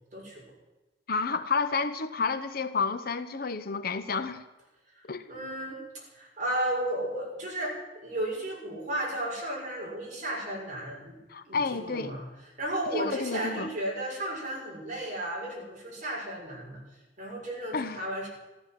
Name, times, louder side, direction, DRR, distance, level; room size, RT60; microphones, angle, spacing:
voice 1, 0.1-0.4 4.9-5.8 6.1-11.2 11.4-12.2 12.6-16.8 17.2-18.3, right 1 dB, 40° right, -3 dB, 6.4 m, -34 dB
voice 2, 1.1-4.4 5.1-5.3 11.3-12.2 12.9-13.7 17.7-18.0, left 4 dB, 50° left, 11 dB, 0.9 m, -30 dB
14.5 x 13.0 x 7.6 m, 1.1 s
head